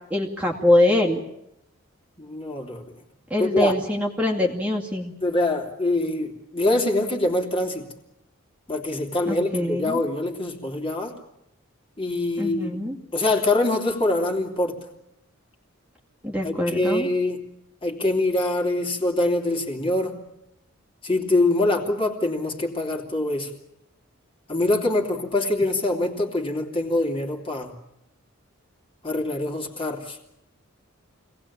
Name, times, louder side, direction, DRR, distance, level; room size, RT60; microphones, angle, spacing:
voice 1, 0.1-1.2 3.3-5.1 9.3-10.0 12.4-13.0 16.2-17.1, left 1 dB, 5° right, -2 dB, 2.4 m, -23 dB
voice 2, 2.2-2.8 3.4-3.7 5.2-7.9 8.7-11.1 12.0-12.8 13.1-14.8 16.4-17.4 17.8-20.2 21.0-23.5 24.5-27.7 29.0-30.2, left 2 dB, 25° left, 1 dB, 3.0 m, -24 dB
25.5 x 18.5 x 8.7 m, 0.83 s
head